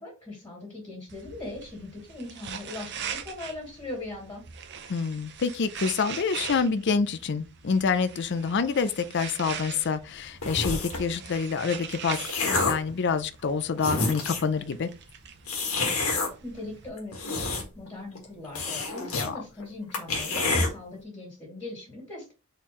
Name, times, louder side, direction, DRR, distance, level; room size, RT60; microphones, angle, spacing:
voice 1, 0.0-4.4 16.4-22.3, left 2 dB, 20° left, 2.2 m, -40 dB
put mascara on, 1.1-16.9, right 7 dB, 55° right, 0.6 m, -42 dB
voice 2, 4.9-14.9 19.1-19.4, left 5 dB, 55° left, 0.4 m, -27 dB
sound 1, 10.4-11.1 11.8-12.9 13.5-13.6 13.8-14.5 15.5-16.3 17.0-17.9 18.2-18.3 18.6-19.3 19.6-19.7 19.9-20.7, left 3 dB, 80° left, 1.7 m, -28 dB
4.3 x 3.9 x 3.0 m
head